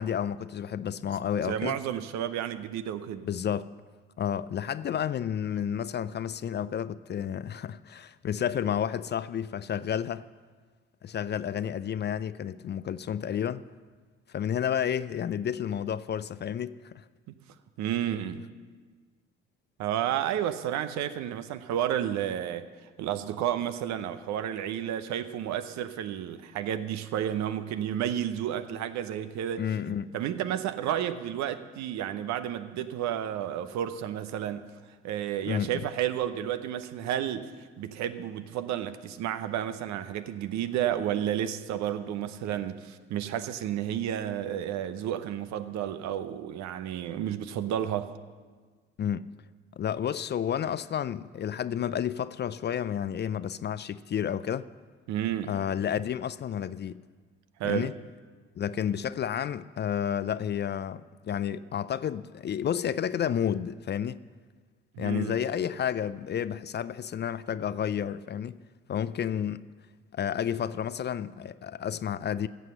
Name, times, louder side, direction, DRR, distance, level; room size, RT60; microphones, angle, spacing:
voice 1, 0.0-1.8 3.2-3.7 4.2-10.3 11.0-13.6 14.3-17.0 29.6-30.1 35.5-35.9 49.0-49.3 49.8-54.7 55.5-57.0 57.6-57.9 58.6-64.2 65.0-68.6 68.9-69.7 70.1-72.5, left 9 dB, 35° left, 0.4 m, -31 dB
voice 2, 1.4-3.2 17.8-18.5 19.8-22.7 23.0-29.6 30.1-34.7 35.0-37.5 37.8-48.1 55.1-55.5 57.6-57.9 64.9-65.4, right 10 dB, 65° right, 0.8 m, -31 dB
14.5 x 7.7 x 6.6 m
hypercardioid pair, 50°, 30 cm